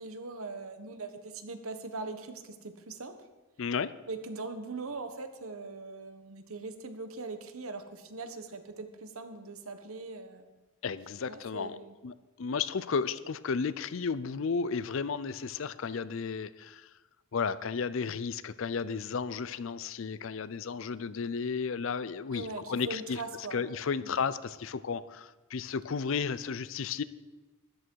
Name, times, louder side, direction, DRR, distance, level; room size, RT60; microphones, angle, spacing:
voice 1, 0.0-3.1 4.1-10.5 11.3-11.9 22.3-23.6 24.0-24.2, right 3 dB, 70° right, 8 dB, 1.2 m, -41 dB
voice 2, 3.6-3.9 10.8-11.8 12.0-16.9 17.3-23.2 23.5-27.0, left 5 dB, 60° left, 16 dB, 0.5 m, -33 dB
13.0 x 11.0 x 4.6 m, 1.2 s
head